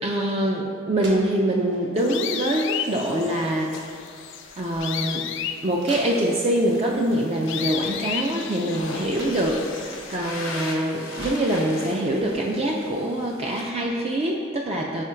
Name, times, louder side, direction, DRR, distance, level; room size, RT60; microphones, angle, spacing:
voice 1, 0.0-3.8 4.6-5.3 5.6-15.0, right 1 dB, 30° right, -1 dB, 0.3 m, -24 dB
sound 1, 0.5-0.6 1.0-2.0 2.7-3.2 3.4-6.6 8.2-10.6 11.1-13.2, right 1 dB, 55° right, 1.0 m, -44 dB
sound 2, 2.0-10.2, left 9 dB, 60° left, 0.3 m, -34 dB
sound 3, 3.7-13.7, left 2 dB, 80° left, 0.9 m, -40 dB
4.9 x 4.5 x 4.3 m, 2.1 s
head